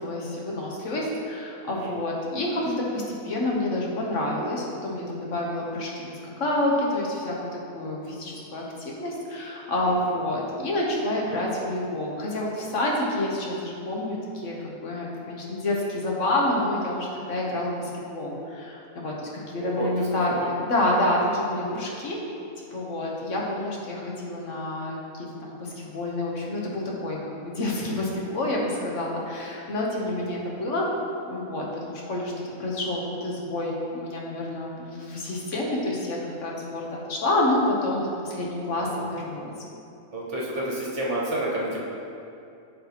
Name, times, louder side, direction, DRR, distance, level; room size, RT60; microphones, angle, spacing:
voice 1, 0.0-7.3 7.7-22.2 22.7-30.9 31.2-32.3 32.6-39.5, left 1 dB, 60° left, -3 dB, 1.2 m, -28 dB
voice 2, 9.8-10.3 19.6-20.5 30.3-30.4 38.7-39.0 40.1-41.8, right 1 dB, 55° right, -4 dB, 1.4 m, -31 dB
12.0 x 4.1 x 2.9 m, 2.7 s
omnidirectional pair, 1.5 m